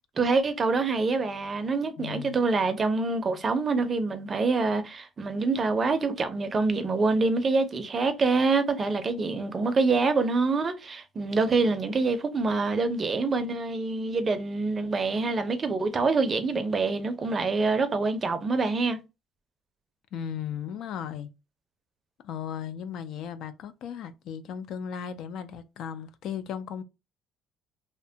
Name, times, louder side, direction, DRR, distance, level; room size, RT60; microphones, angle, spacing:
voice 1, 0.2-19.0, right 3 dB, 30° right, 0.5 m, -26 dB
voice 2, 2.0-2.4 20.1-21.3 22.2-26.8, left 8 dB, 65° left, 0.3 m, -36 dB
2.7 x 2.1 x 2.6 m
cardioid pair, 115°, 0 cm